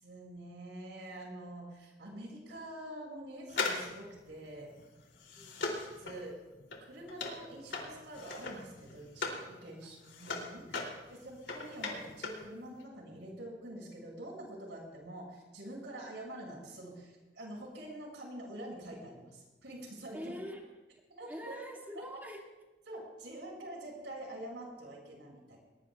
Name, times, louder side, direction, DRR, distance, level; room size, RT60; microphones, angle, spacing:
voice 1, 0.0-4.7 6.0-6.4 6.9-20.3 21.2-21.6 22.0-22.1 22.9-25.6, right 1 dB, 80° right, -1 dB, 6.8 m, -46 dB
sound 1, 3.5-9.5 9.8-12.5 12.7-12.8, left 3 dB, 80° left, 3.2 m, -39 dB
voice 2, 5.4-5.8 9.8-9.9 11.1-11.2 20.1-20.9 21.3-22.5, equal, 10° right, -1 dB, 2.4 m, -45 dB
21.5 x 20.0 x 2.5 m, 1.1 s
head